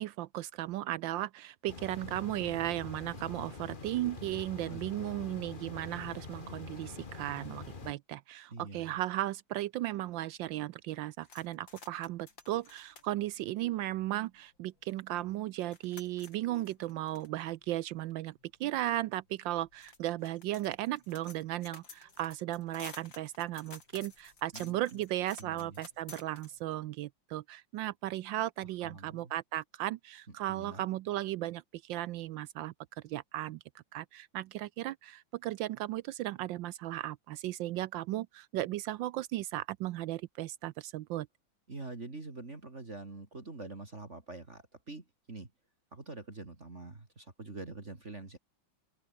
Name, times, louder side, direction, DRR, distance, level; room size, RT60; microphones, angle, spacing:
voice 1, 0.0-32.7 33.0-41.3, right 15 dB, 75° right, 1.3 m, -36 dB
sound 1, 1.7-7.9, left 4 dB, 25° left, 1.6 m, -45 dB
voice 2, 4.7-5.4 8.5-8.9 24.5-25.0 25.4-25.8 28.8-29.3 30.5-30.8 41.7-45.5 45.9-48.4, right 2 dB, 35° right, 3.6 m, -45 dB
sound 2, 11.2-14.4 14.9-15.0 15.2-26.9, left 4 dB, 70° left, 4.5 m, -54 dB
open air
omnidirectional pair, 2.1 m